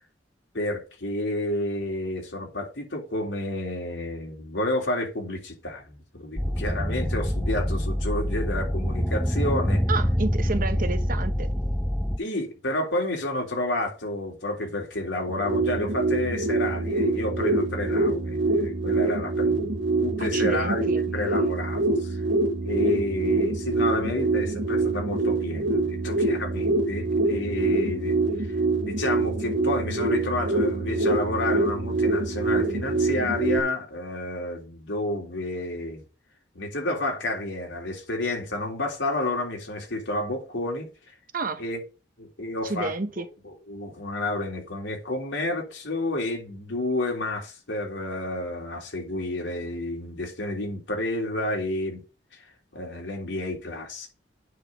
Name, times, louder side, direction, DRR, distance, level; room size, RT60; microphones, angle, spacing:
voice 1, 0.5-9.8 10.9-11.0 12.2-19.7 20.0-20.9 21.1-22.2 22.6-28.2 28.5-28.6 28.8-36.0 36.5-40.9 41.6-41.8 42.2-42.9 43.4-52.0 52.7-54.1, left 1 dB, 80° left, 3.3 m, -30 dB
sound 1, 6.4-12.2, equal, ahead, 0.4 m, -25 dB
voice 2, 9.9-11.5 20.2-21.1 41.3-41.6 42.6-43.3, right 3 dB, 50° right, 1.0 m, -30 dB
sound 2, 15.2-33.6, right 3 dB, 70° right, 1.2 m, -25 dB
9.1 x 4.0 x 6.0 m
head